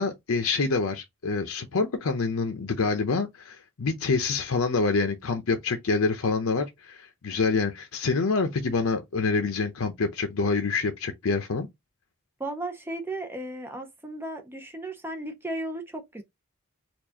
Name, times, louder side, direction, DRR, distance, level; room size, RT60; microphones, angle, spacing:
voice 1, 0.0-11.7, left 4 dB, 75° left, 0.7 m, -26 dB
voice 2, 12.4-16.2, right 1 dB, 10° right, 0.7 m, -35 dB
4.4 x 2.4 x 2.8 m
head